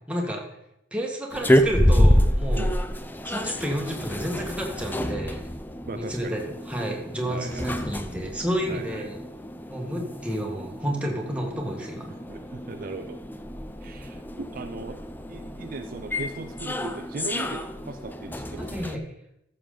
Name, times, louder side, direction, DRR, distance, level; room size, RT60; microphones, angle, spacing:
voice 1, 0.1-0.4 0.9-2.7 3.2-5.5 5.9-6.4 6.7-9.2 9.7-12.1 18.6-19.0, equal, 5° right, 0 dB, 1.7 m, -30 dB
sound 1, 1.3-19.0, equal, 10° left, 0.5 m, -28 dB
voice 2, 5.9-6.4 7.3-7.8 8.7-9.1 11.8-11.9 12.3-13.2 13.8-15.0 15.3-18.7, right 3 dB, 45° right, 7 dB, 0.5 m, -38 dB
14.0 x 6.9 x 3.8 m, 0.80 s
head